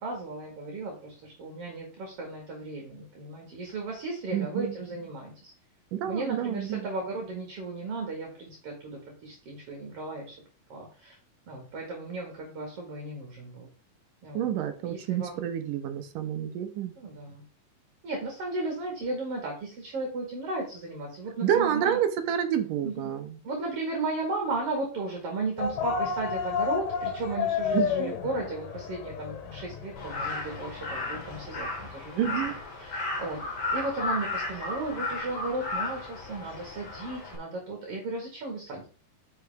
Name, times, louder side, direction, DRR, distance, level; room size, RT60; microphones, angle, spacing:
voice 1, 0.0-5.5 6.1-10.4 10.7-11.2 11.5-13.7 14.2-14.5 14.8-15.5 17.0-17.4 18.0-22.0 22.8-23.1 23.4-32.5 32.8-33.4 33.7-38.9, right 2 dB, 45° right, 2.6 m, -35 dB
voice 2, 4.3-4.7 5.9-6.9 14.3-16.9 21.4-23.3 27.7-28.1 32.2-32.6, right 9 dB, 75° right, 2.3 m, -29 dB
sound 1, 25.6-31.5, left 6 dB, 70° left, 2.8 m, -32 dB
Crow, 30.0-37.3, left 2 dB, 45° left, 3.5 m, -34 dB
9.7 x 5.6 x 3.5 m
omnidirectional pair, 4.2 m